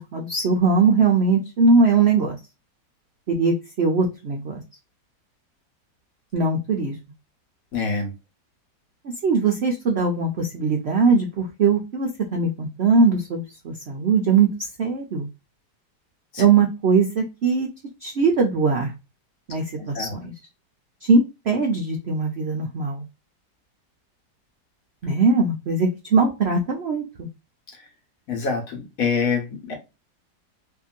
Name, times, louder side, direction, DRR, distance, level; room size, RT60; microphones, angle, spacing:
voice 1, 0.1-2.4 3.3-4.6 6.3-7.0 9.2-14.5 14.8-15.3 16.4-17.7 18.0-18.9 19.5-20.3 21.0-23.0 25.0-27.3, right 4 dB, 70° right, 0.6 m, -20 dB
voice 2, 7.7-8.1 16.3-16.4 19.8-20.1 28.3-29.8, left 5 dB, 55° left, 1.3 m, -26 dB
2.9 x 2.7 x 2.3 m
omnidirectional pair, 1.9 m